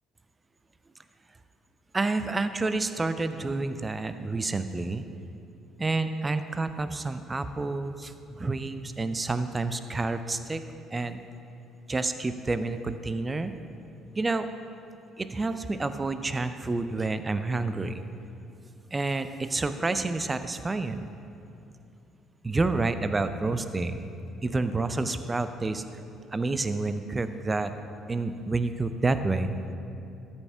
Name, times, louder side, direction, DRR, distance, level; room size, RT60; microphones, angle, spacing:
voice 1, 1.9-5.0 5.8-10.6 10.9-11.2 11.9-13.5 14.1-14.5 15.2-18.0 18.9-21.1 22.4-24.1 24.4-25.8 26.3-27.7 28.1-29.5, right 3 dB, 25° right, 10 dB, 0.5 m, -29 dB
13.0 x 5.7 x 3.5 m, 2.7 s
hypercardioid pair, 50°, 0 cm